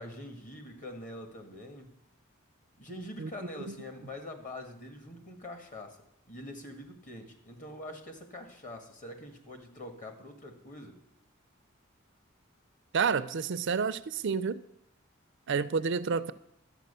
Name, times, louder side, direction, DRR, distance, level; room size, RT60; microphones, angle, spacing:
voice 1, 0.0-2.0 2.8-11.0, left 1 dB, 40° left, 5 dB, 1.7 m, -44 dB
voice 2, 12.9-14.6 15.5-16.3, right 5 dB, 60° right, 14 dB, 0.5 m, -29 dB
12.0 x 8.2 x 6.8 m, 0.80 s
head